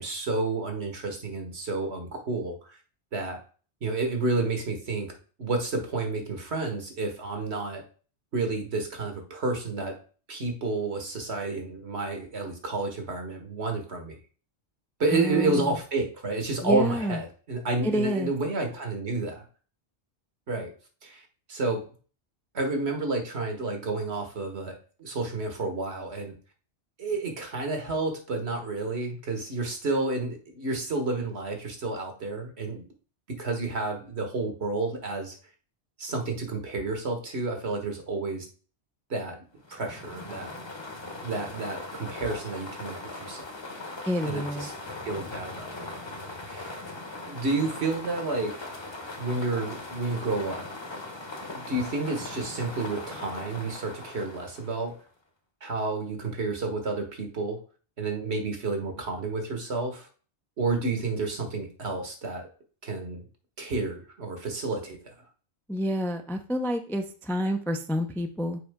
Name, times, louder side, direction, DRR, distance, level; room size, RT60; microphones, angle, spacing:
voice 1, 0.0-2.8 3.1-3.4 3.8-7.8 8.3-10.0 10.3-14.2 15.0-19.4 20.5-20.7 21.0-21.9 22.5-26.3 27.0-32.9 33.3-35.4 36.0-38.5 39.1-39.4 39.7-40.5 41.2-43.4 44.2-44.7 45.0-45.7 46.4-46.8 47.3-48.6 49.2-50.7 51.4-54.9 55.6-57.6 58.0-60.1 60.6-62.5 62.8-63.2 63.6-65.1, right 3 dB, 70° right, 4 dB, 1.7 m, -30 dB
voice 2, 15.1-15.7 16.6-17.2 17.8-18.3 44.1-44.7 65.7-68.6, equal, 5° left, 5 dB, 0.4 m, -28 dB
sound 1, 39.6-55.1, left 2 dB, 25° left, 1.0 m, -40 dB
6.7 x 4.9 x 3.5 m, 0.38 s
omnidirectional pair, 1.2 m